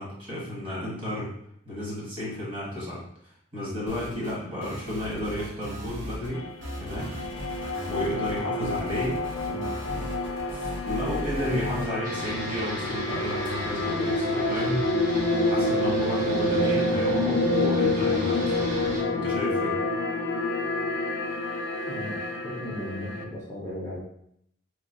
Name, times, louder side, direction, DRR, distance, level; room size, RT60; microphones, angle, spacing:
voice 1, 0.0-1.3 1.6-3.0 3.5-6.4 6.8-7.3 7.9-9.2 9.9-10.0 10.5-14.8 15.5-18.5 19.1-19.8, left 1 dB, 25° right, -6 dB, 1.3 m, -32 dB
sound 1, 3.9-4.4 4.6-6.3 6.6-11.9, equal, 70° right, 0.9 m, -37 dB
sound 2, 6.3-23.2, left 2 dB, 75° left, 0.4 m, -28 dB
sound 3, 12.0-19.0, equal, 45° right, 0.6 m, -37 dB
voice 2, 22.4-24.0, left 1 dB, 15° left, -6 dB, 0.6 m, -36 dB
3.0 x 2.0 x 3.8 m, 0.71 s
head